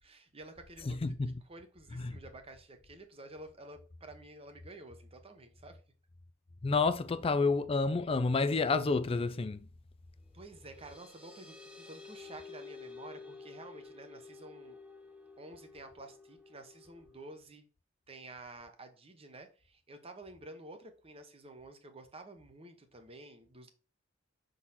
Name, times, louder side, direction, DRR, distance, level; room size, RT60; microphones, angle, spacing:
voice 1, 0.0-1.2 1.4-5.8 10.3-14.8 15.4-17.7 18.1-23.7, right 2 dB, 30° right, 0.9 m, -51 dB
voice 2, 0.9-1.3 2.0-2.1 6.6-9.6, left 4 dB, 30° left, 0.4 m, -29 dB
sound 1, 10.2-17.4, left 4 dB, 5° right, 1.3 m, -52 dB
6.2 x 3.9 x 4.1 m
head